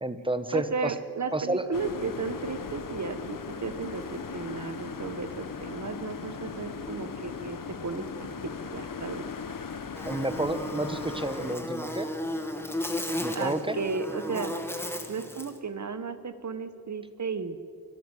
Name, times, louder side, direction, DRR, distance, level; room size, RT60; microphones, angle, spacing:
voice 1, 0.0-0.9 1.3-1.6 10.1-12.1 13.2-13.8, right 2 dB, 15° right, 11 dB, 1.3 m, -30 dB
voice 2, 0.5-8.0 8.7-9.2 13.3-14.5 15.1-17.6, right 5 dB, 45° right, 11 dB, 1.4 m, -34 dB
sound 1, 1.7-11.6, left 6 dB, 55° left, 1.2 m, -38 dB
Buzz, 9.9-15.6, left 1 dB, 5° left, 1.9 m, -34 dB
24.0 x 13.0 x 8.3 m, 2.4 s
wide cardioid pair, 85°, 38 cm